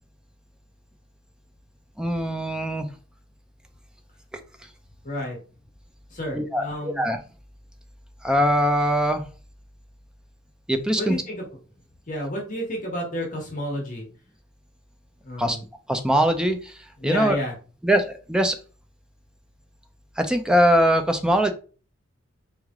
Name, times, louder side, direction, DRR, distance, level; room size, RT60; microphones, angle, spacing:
voice 1, 2.0-2.9 6.3-7.2 8.2-9.2 10.7-11.2 15.4-15.6 15.9-16.8 17.0-17.4 17.8-18.6 20.2-21.5, equal, 5° right, 6 dB, 0.5 m, -21 dB
voice 2, 5.0-5.4 6.1-7.0 11.0-11.4 12.1-14.0 15.2-15.6 17.0-17.5, equal, 40° left, -1 dB, 1.4 m, -30 dB
4.2 x 3.2 x 3.7 m, 0.36 s
head